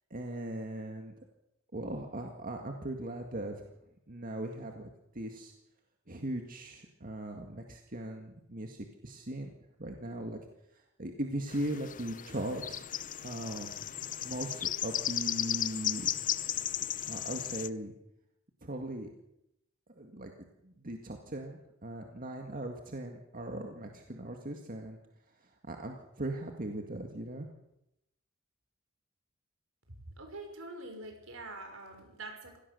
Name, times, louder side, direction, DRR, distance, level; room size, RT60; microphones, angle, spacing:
voice 1, 0.1-1.1 1.7-3.6 4.1-4.9 5.1-5.5 6.1-10.4 11.0-12.8 13.2-13.7 14.2-16.1 17.1-17.9 18.6-19.1 20.0-20.3 20.6-25.0 25.7-27.5, right 1 dB, 45° right, 3 dB, 2.0 m, -39 dB
sound 1, 11.5-17.7, left 11 dB, 40° left, 0.7 m, -35 dB
voice 2, 29.9-32.6, right 2 dB, 75° right, 4 dB, 5.7 m, -45 dB
25.0 x 17.5 x 6.9 m, 0.85 s
head